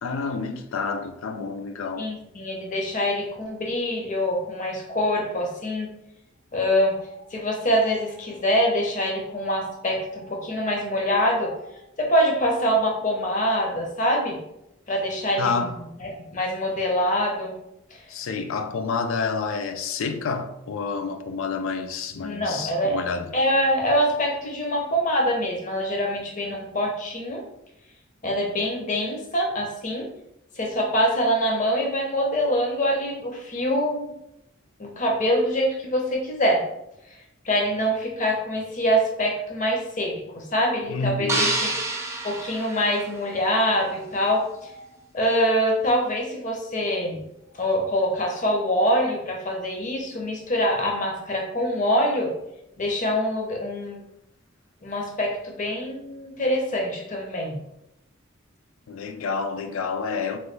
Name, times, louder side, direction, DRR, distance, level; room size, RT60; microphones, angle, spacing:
voice 1, 0.0-2.1 15.4-15.7 18.1-23.3 40.9-41.6 58.9-60.4, left 4 dB, 85° left, 0.4 m, -29 dB
voice 2, 2.0-5.9 6.5-11.7 12.0-14.4 14.9-15.7 16.0-17.6 22.2-23.0 23.3-27.4 28.2-30.1 30.6-34.1 34.8-36.6 37.4-41.7 42.2-44.8 45.1-47.2 47.5-52.3 52.8-54.0 54.8-57.6, equal, 40° left, 0.6 m, -24 dB
sound 1, 41.3-43.6, right 2 dB, 15° right, 0.4 m, -28 dB
3.1 x 2.2 x 3.1 m
head